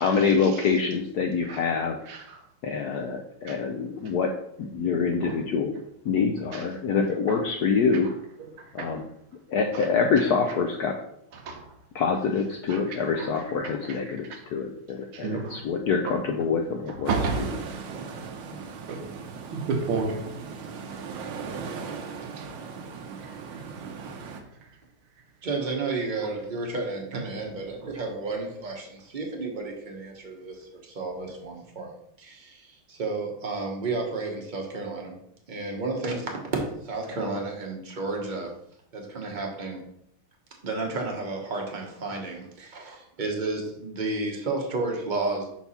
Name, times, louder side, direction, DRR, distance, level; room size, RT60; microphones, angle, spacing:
voice 1, 0.0-2.0 2.6-5.7 6.0-8.1 8.7-9.0 9.5-11.0 11.9-17.5, left 5 dB, 75° left, 0.9 m, -26 dB
voice 2, 2.1-2.4 3.5-3.6 5.2-5.4 6.5-6.6 7.3-7.4 8.6-9.0 9.7-9.9 11.4-11.7 12.7-13.3 13.9-14.4 15.1-15.6 17.1-17.5 18.9-19.0 19.5-20.2 22.4-22.5, right 4 dB, 90° right, 1.8 m, -31 dB
sound 1, 17.1-24.4, right 5 dB, 70° right, 1.4 m, -38 dB
voice 3, 25.4-35.1 35.5-38.5 38.9-39.8 40.6-45.5, right 3 dB, 35° right, 0.8 m, -32 dB
5.6 x 4.6 x 4.2 m
omnidirectional pair, 2.2 m